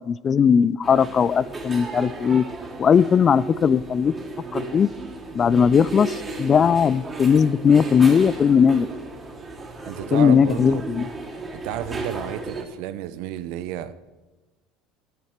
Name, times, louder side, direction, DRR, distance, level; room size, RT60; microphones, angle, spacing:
voice 1, 0.1-2.5 2.8-4.1 4.5-4.9 5.3-8.9 10.1-11.1, left 7 dB, 35° left, 20 dB, 0.4 m, -18 dB
sound 1, 0.8-12.6, right 2 dB, 25° right, 3.2 m, -35 dB
voice 2, 9.8-10.8 11.5-13.9, right 12 dB, 70° right, 15 dB, 0.7 m, -31 dB
14.0 x 11.5 x 4.5 m, 1.2 s
hypercardioid pair, 85°, 0 cm